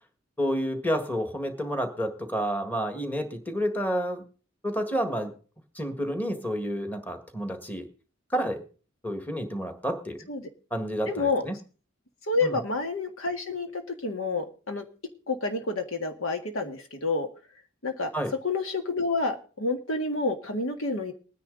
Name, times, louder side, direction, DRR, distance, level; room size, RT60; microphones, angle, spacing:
voice 1, 0.4-4.2 4.6-5.3 5.7-7.9 8.3-8.6 9.0-10.2 10.7-11.5 12.4-12.6 18.1-18.3, equal, 10° left, 6 dB, 1.7 m, -29 dB
voice 2, 11.1-11.5 12.3-14.9 15.3-17.3 17.8-18.1 18.4-21.1, left 3 dB, 85° left, 5 dB, 1.8 m, -29 dB
20.0 x 10.0 x 3.9 m, 0.38 s
head